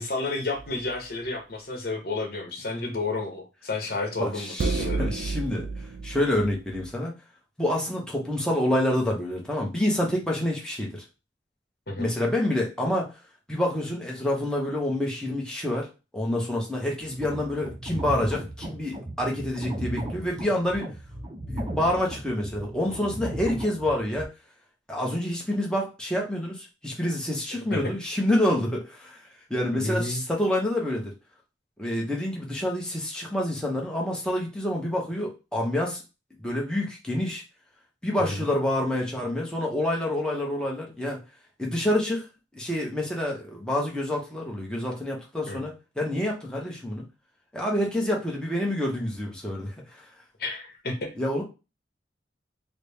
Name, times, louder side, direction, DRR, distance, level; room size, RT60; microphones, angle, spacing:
voice 1, 0.0-5.1 11.9-12.1 27.7-27.9 29.7-30.2 38.2-38.5 45.5-45.6 50.4-51.1, left 2 dB, 55° left, 3 dB, 1.0 m, -31 dB
sound 1, 0.6-0.9 4.6-6.9, right 3 dB, 75° right, 0.4 m, -31 dB
voice 2, 4.2-5.7 6.0-7.1 7.6-11.0 12.0-13.1 13.5-20.9 21.5-24.3 24.9-29.2 29.5-31.1 31.8-36.0 36.4-37.4 38.0-41.2 41.6-42.2 42.5-47.0 47.5-50.0 51.2-51.4, left 1 dB, 5° left, -2 dB, 0.8 m, -27 dB
sound 2, 17.0-24.2, right 1 dB, 25° right, 0.6 m, -36 dB
4.0 x 2.1 x 3.4 m, 0.29 s
head